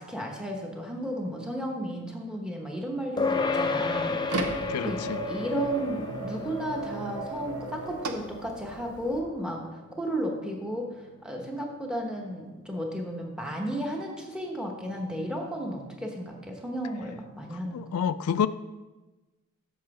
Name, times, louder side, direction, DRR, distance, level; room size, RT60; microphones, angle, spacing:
voice 1, 0.0-5.0 5.2-9.6 10.0-10.9 11.2-17.8, right 1 dB, 5° right, 1 dB, 1.1 m, -33 dB
sound 1, 3.2-12.9, left 4 dB, 20° left, 0.5 m, -34 dB
sound 2, 3.2-9.2, right 2 dB, 85° right, 0.8 m, -36 dB
voice 2, 4.7-5.2 17.5-18.5, left 8 dB, 80° left, 13 dB, 0.3 m, -29 dB
7.4 x 6.4 x 4.8 m, 1.1 s
head